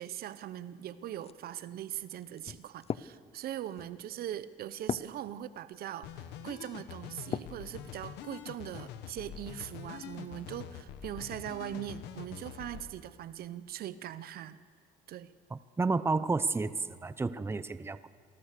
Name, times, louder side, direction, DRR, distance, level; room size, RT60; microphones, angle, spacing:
voice 1, 0.0-14.6 15.1-15.3, right 11 dB, 65° right, 15 dB, 0.8 m, -41 dB
sound 1, 1.1-7.7 8.2-8.8, left 8 dB, 35° left, 0.6 m, -42 dB
sound 2, 6.0-12.9, left 9 dB, 90° left, 1.4 m, -45 dB
voice 2, 15.5-18.1, right 3 dB, 15° right, 14 dB, 0.7 m, -31 dB
27.5 x 19.0 x 6.7 m, 2.3 s
cardioid pair, 110°, 17 cm